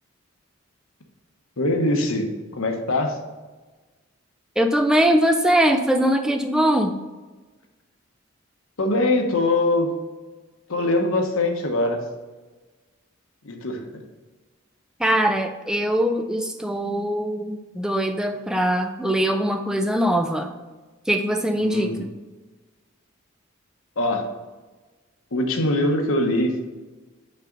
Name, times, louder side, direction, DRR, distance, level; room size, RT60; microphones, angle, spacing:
voice 1, 1.6-3.2 8.8-10.0 10.7-12.0 13.4-14.0 21.6-22.1 24.0-24.3 25.3-26.6, left 2 dB, 80° left, 3 dB, 1.0 m, -23 dB
voice 2, 4.6-7.0 15.0-20.5 21.1-22.0, right 1 dB, 5° right, 5 dB, 0.4 m, -21 dB
5.6 x 4.8 x 3.9 m, 1.2 s
head